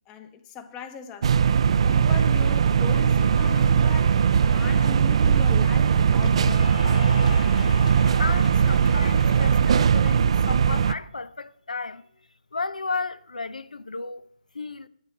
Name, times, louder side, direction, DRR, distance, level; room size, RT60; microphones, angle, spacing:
voice 1, 0.1-1.3 1.7-4.1 4.5-6.8, left 5 dB, 20° left, 0.9 m, -39 dB
sound 1, 1.2-10.9, right 7 dB, 50° right, 0.4 m, -20 dB
Cheering / Applause, 1.9-9.7, left 4 dB, 60° left, 1.0 m, -39 dB
voice 2, 8.2-12.0 12.5-14.2 14.5-14.9, left 3 dB, 85° left, 0.6 m, -33 dB
9.6 x 8.6 x 5.9 m
figure-of-eight pair, 150°, 4 cm